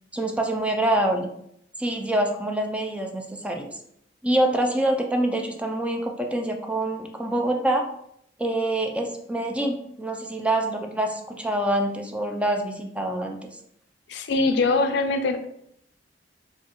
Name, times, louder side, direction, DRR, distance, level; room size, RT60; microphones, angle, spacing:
voice 1, 0.1-1.3 1.8-3.7 4.2-7.8 8.4-13.6, right 1 dB, 5° right, 3 dB, 0.4 m, -25 dB
voice 2, 14.1-15.4, left 3 dB, 65° left, 8 dB, 0.4 m, -22 dB
4.4 x 2.3 x 3.0 m, 0.73 s
head